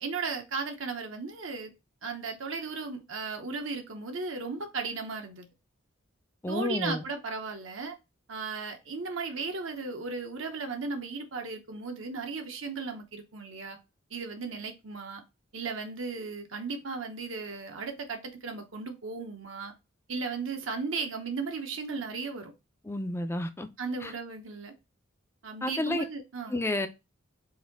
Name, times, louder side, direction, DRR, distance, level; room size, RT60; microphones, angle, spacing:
voice 1, 0.0-1.7 2.0-5.5 6.5-8.0 8.3-13.8 14.1-15.2 15.5-19.7 20.1-22.5 23.8-24.7 25.4-26.6, right 4 dB, 70° right, 0.9 m, -36 dB
voice 2, 6.4-7.0 22.8-23.7 24.0-24.1 25.6-26.0 26.5-26.9, left 1 dB, 10° left, 0.4 m, -30 dB
4.1 x 2.7 x 3.9 m
head